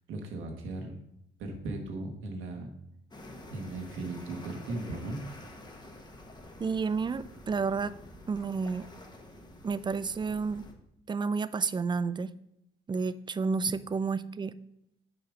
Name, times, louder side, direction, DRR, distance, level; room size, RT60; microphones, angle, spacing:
voice 1, 0.1-1.0 1.4-2.7 3.5-5.2, right 2 dB, 80° right, 3 dB, 1.5 m, -37 dB
sound 1, 3.1-10.7, left 1 dB, 20° left, 1.2 m, -49 dB
voice 2, 6.6-7.9 8.3-8.9 9.6-10.7 11.1-12.3 12.9-14.5, right 5 dB, 25° right, 15 dB, 0.4 m, -30 dB
7.0 x 5.0 x 4.9 m, 0.79 s
cardioid pair, 90°, 20 cm